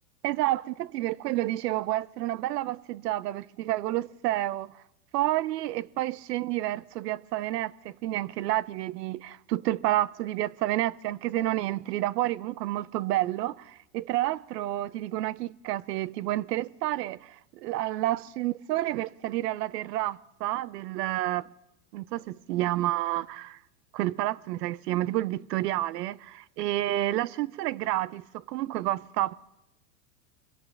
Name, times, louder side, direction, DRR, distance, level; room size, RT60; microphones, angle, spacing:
voice 1, 0.2-4.8 5.1-21.5 21.9-23.6 23.9-29.3, right 15 dB, 80° right, 0.6 m, -30 dB
24.0 x 17.0 x 3.3 m
supercardioid pair, 130°, 48 cm